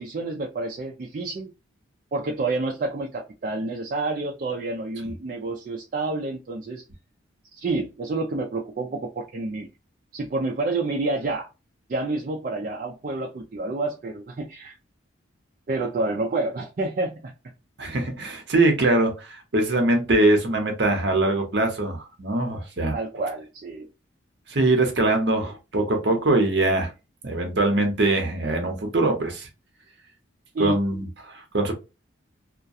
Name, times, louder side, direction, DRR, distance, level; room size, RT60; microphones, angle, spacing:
voice 1, 0.0-1.5 2.1-6.8 7.5-9.7 10.1-11.5 11.9-14.8 15.7-17.3 22.9-23.9 30.5-30.7, right 2 dB, 45° right, 0.3 m, -29 dB
voice 2, 17.8-22.9 24.5-26.9 27.2-29.5 30.6-31.7, right 2 dB, 60° right, 0.7 m, -22 dB
2.3 x 2.1 x 2.6 m
head